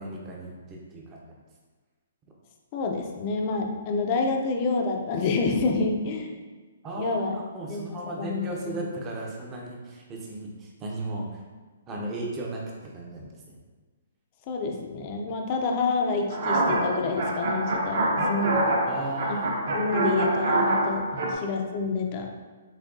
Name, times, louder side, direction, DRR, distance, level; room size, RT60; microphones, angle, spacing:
voice 1, 0.0-1.4 6.8-11.4 11.9-13.6 18.9-19.7 21.1-21.3, right 2 dB, 15° right, -1 dB, 0.6 m, -36 dB
voice 2, 2.7-6.3 7.0-7.3 7.7-8.8 14.5-18.7 19.3-19.4 19.7-22.3, left 3 dB, 25° left, 2 dB, 0.5 m, -28 dB
sound 1, 16.3-21.3, right 2 dB, 50° right, 0.8 m, -26 dB
7.2 x 2.7 x 2.6 m, 1.4 s
hypercardioid pair, 170°, 0 cm